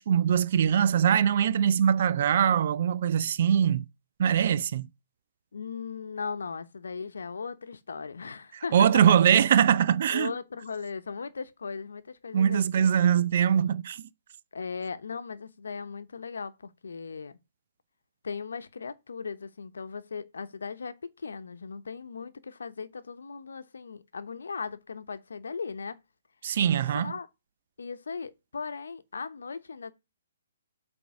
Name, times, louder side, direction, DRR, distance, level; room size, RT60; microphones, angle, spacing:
voice 1, 0.0-3.9 4.2-4.9 8.7-10.3 12.3-14.0 26.4-27.1, right 8 dB, 55° right, 0.5 m, -22 dB
voice 2, 5.5-9.2 10.1-12.9 14.5-17.4 18.2-26.0 26.9-27.3 27.8-29.9, left 5 dB, 80° left, 0.9 m, -38 dB
8.1 x 3.5 x 4.8 m
hypercardioid pair, 145°, 0 cm